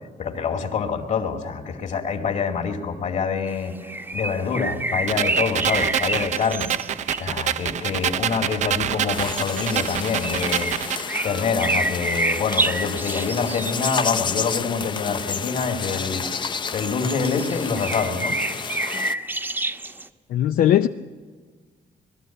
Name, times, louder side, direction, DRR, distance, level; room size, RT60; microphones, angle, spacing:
voice 1, 0.2-6.7 7.2-10.7 11.2-16.3 16.7-18.4, left 5 dB, 55° left, 2.6 m, -26 dB
sound 1, 3.5-7.5 7.9-8.0 8.5-8.7 9.2-16.4 16.7-20.1, right 2 dB, 15° right, 0.9 m, -29 dB
sound 2, 5.1-11.1, right 10 dB, 55° right, 0.5 m, -27 dB
sound 3, 9.1-19.1, left 5 dB, 30° left, 0.6 m, -31 dB
voice 2, 20.3-20.9, left 11 dB, 80° left, 0.6 m, -18 dB
20.5 x 14.0 x 9.1 m
cardioid pair, 145°, 15 cm